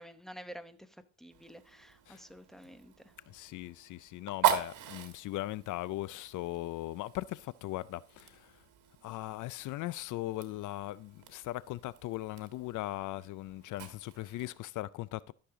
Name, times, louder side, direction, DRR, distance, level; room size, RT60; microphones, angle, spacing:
voice 1, 0.0-3.1, equal, ahead, 0.9 m, -50 dB
Fire, 1.3-14.6, right 11 dB, 85° right, 1.5 m, -40 dB
voice 2, 3.3-8.5 9.0-15.3, left 16 dB, 80° left, 0.4 m, -39 dB
13.0 x 6.7 x 3.7 m
cardioid pair, 90°, 30 cm